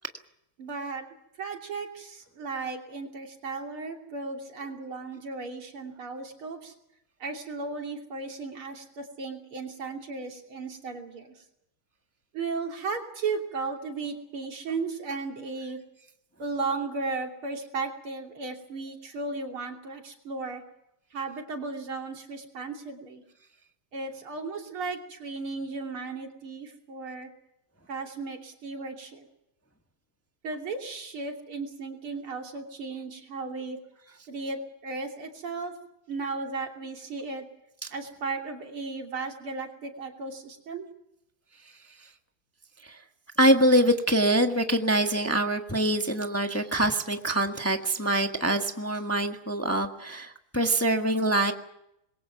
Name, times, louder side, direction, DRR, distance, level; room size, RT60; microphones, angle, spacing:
voice 1, 0.6-1.1 1.4-6.7 7.2-11.3 12.3-15.8 16.4-20.6 21.1-23.2 23.9-27.3 27.9-29.3 30.4-33.8 34.3-35.7 36.1-37.5 37.9-40.9, right 4 dB, 90° right, 2 dB, 3.9 m, -35 dB
voice 2, 43.4-51.5, right 1 dB, 10° left, 5 dB, 1.2 m, -24 dB
26.0 x 22.0 x 6.0 m, 0.80 s
omnidirectional pair, 2.3 m